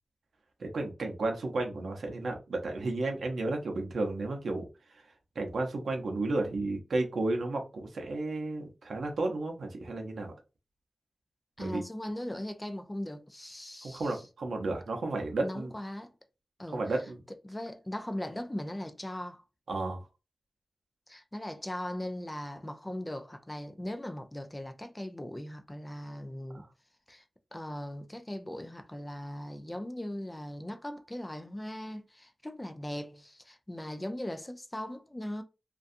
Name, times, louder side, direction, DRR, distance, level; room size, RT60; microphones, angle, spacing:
voice 1, 0.6-4.7 5.4-10.3 11.6-11.8 13.8-15.7 16.7-17.2 19.7-20.1 26.1-26.2 26.5-26.7, right 2 dB, 80° right, 0.6 m, -33 dB
voice 2, 11.6-14.2 15.4-16.1 16.6-16.8 17.4-19.4 21.1-26.6 27.1-27.2 27.5-35.4, left 1 dB, 15° left, 0.4 m, -39 dB
2.5 x 2.3 x 2.5 m
wide cardioid pair, 95°, 0 cm